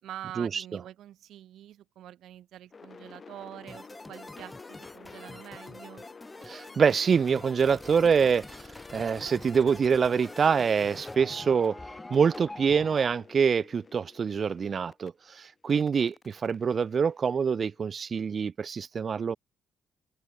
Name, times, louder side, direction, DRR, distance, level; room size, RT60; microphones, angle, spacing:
voice 1, 0.0-6.1, right 12 dB, 75° right, 2.3 m, -45 dB
sound 1, 2.7-15.1 15.7-17.8, left 4 dB, 30° left, 5.3 m, -50 dB
sound 2, 3.7-13.1, left 2 dB, 10° left, 2.4 m, -45 dB
voice 2, 6.4-11.8 12.1-19.4, right 6 dB, 40° right, 0.3 m, -25 dB
cardioid pair, 105°, 0 cm